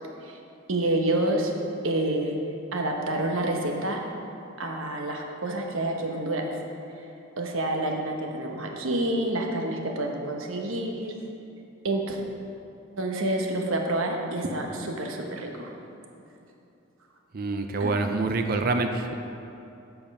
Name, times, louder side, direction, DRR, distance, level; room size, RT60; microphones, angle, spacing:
voice 1, 0.7-1.5 1.8-2.4 2.7-4.0 4.6-6.5 6.9-7.0 7.4-11.1 11.8-12.2 13.0-15.7 17.8-17.9, right 1 dB, 75° right, 2 dB, 1.1 m, -28 dB
voice 2, 17.3-19.2, right 3 dB, 45° right, 6 dB, 0.5 m, -26 dB
7.9 x 6.9 x 5.4 m, 2.8 s
head